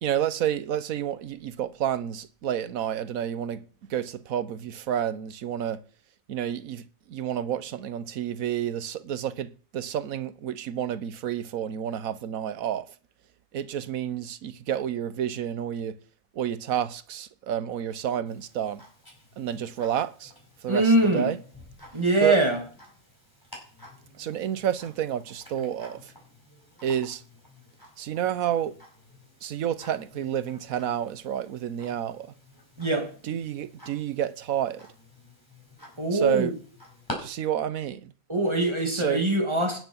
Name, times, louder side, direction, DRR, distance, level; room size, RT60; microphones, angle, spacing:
voice 1, 0.0-3.6 3.9-5.8 6.3-6.8 7.1-12.8 13.5-16.0 16.4-18.8 19.4-20.3 20.6-21.4 22.2-22.4 24.2-26.1 26.8-27.2 28.0-28.7 29.4-32.3 33.3-34.9 36.1-36.5 37.2-38.1 38.9-39.2, right 10 dB, 75° right, 1.3 m, -29 dB
Tick-tock, 18.3-37.1, equal, 15° left, 5.6 m, -48 dB
voice 2, 20.7-21.3 21.9-22.6 32.8-33.1 36.0-36.5 38.3-39.8, right 1 dB, 20° right, 2.6 m, -23 dB
18.5 x 9.4 x 5.6 m
omnidirectional pair, 1.5 m